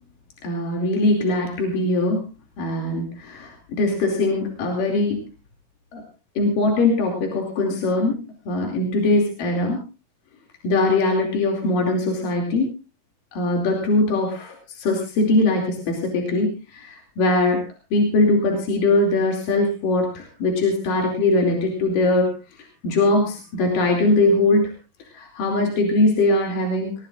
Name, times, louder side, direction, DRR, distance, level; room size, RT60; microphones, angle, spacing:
voice 1, 0.4-2.2 2.6-5.2 5.9-6.0 6.4-8.2 8.5-9.8 10.6-12.7 13.3-17.6 17.9-22.3 22.8-24.7 25.1-26.9, left 2 dB, 75° left, 1 dB, 4.4 m, -21 dB
21.5 x 19.5 x 2.5 m, 0.31 s
omnidirectional pair, 3.9 m